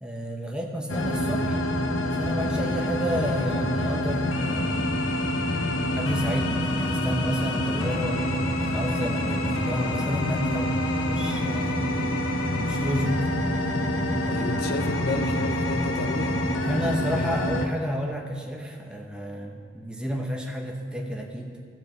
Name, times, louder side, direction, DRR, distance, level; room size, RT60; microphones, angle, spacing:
voice 1, 0.0-1.6 2.2-4.9 6.0-8.2 8.6-11.8 12.5-13.3 16.6-21.6, equal, 5° right, 1 dB, 0.9 m, -31 dB
sound 1, 0.9-17.7, left 1 dB, 75° left, 0.8 m, -26 dB
voice 2, 14.3-16.4, left 4 dB, 55° left, 7 dB, 0.4 m, -32 dB
13.5 x 4.6 x 6.7 m, 2.1 s
head